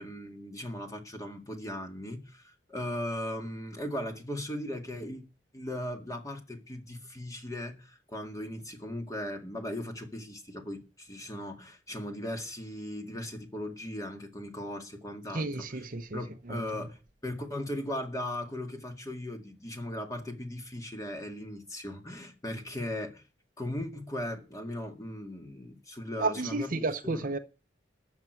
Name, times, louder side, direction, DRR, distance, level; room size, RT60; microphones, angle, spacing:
voice 1, 0.0-5.2 5.5-15.9 16.1-23.2 23.6-27.3, left 1 dB, 20° left, 2.0 m, -38 dB
voice 2, 15.3-16.2 16.5-16.6 26.2-27.4, right 3 dB, 45° right, 0.8 m, -32 dB
13.5 x 6.2 x 9.5 m
head